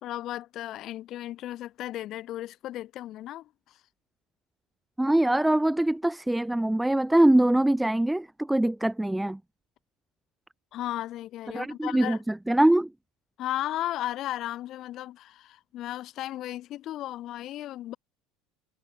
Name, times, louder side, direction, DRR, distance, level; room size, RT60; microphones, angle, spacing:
voice 1, 0.0-3.8 10.7-12.2 13.4-18.0, left 13 dB, 55° left, 2.5 m, -35 dB
voice 2, 5.0-9.4 11.5-12.2 12.5-12.9, right 1 dB, 5° right, 0.4 m, -23 dB
supercardioid pair, 95°, 0 cm